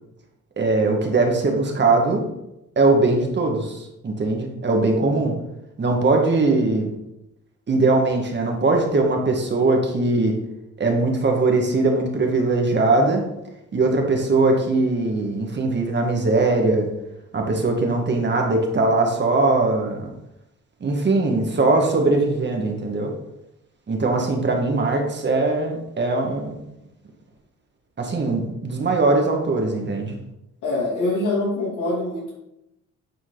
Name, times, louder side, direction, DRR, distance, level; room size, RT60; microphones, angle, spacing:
voice 1, 0.6-2.3 2.8-5.4 5.8-6.9 7.7-10.4 10.8-13.3 13.7-16.9 17.3-20.1 20.8-23.1 23.9-26.6 28.0-30.1, right 3 dB, 35° right, 2 dB, 1.7 m, -20 dB
voice 2, 30.6-32.4, left 2 dB, 85° left, -3 dB, 2.8 m, -24 dB
9.4 x 4.5 x 3.9 m, 0.87 s
cardioid pair, 90°, 30 cm